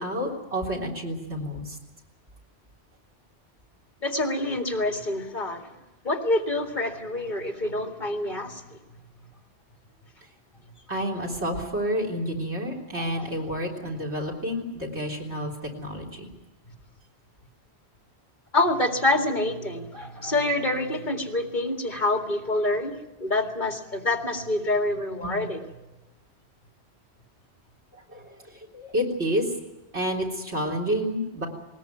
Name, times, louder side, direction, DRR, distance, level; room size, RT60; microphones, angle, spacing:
voice 1, 0.0-1.8 10.9-16.3 25.3-25.4 27.9-29.5 29.9-31.5, equal, 85° right, -1 dB, 3.9 m, -29 dB
voice 2, 4.0-5.7 6.0-8.8 13.0-13.3 18.5-25.6, left 2 dB, 45° left, 4 dB, 2.4 m, -27 dB
20.0 x 20.0 x 9.2 m, 1.0 s
omnidirectional pair, 1.1 m